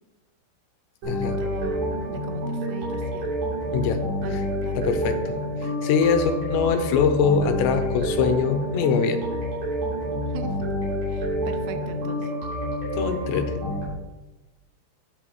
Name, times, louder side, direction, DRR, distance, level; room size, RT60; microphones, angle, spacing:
sound 1, 1.0-13.8, equal, 40° right, 4.3 m, -28 dB
voice 1, 1.4-3.3 4.2-4.8 10.3-10.7 11.1-12.3, right 7 dB, 75° right, 8 dB, 2.7 m, -39 dB
voice 2, 4.8-9.2 12.9-13.5, left 6 dB, 80° left, 7 dB, 3.0 m, -23 dB
10.0 x 9.1 x 3.1 m, 1.1 s
omnidirectional pair, 5.1 m